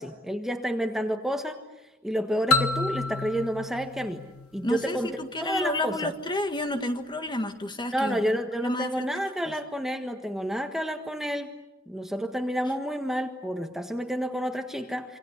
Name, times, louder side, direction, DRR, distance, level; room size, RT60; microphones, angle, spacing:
voice 1, 0.0-1.6 2.0-4.2 4.5-5.1 5.4-6.1 7.9-11.5 11.9-15.2, equal, ahead, 5 dB, 1.5 m, -30 dB
sound 1, 2.5-5.2, left 3 dB, 85° left, 1.3 m, -29 dB
voice 2, 4.6-9.1, left 1 dB, 20° left, 7 dB, 1.7 m, -31 dB
27.0 x 25.5 x 8.2 m, 0.99 s
head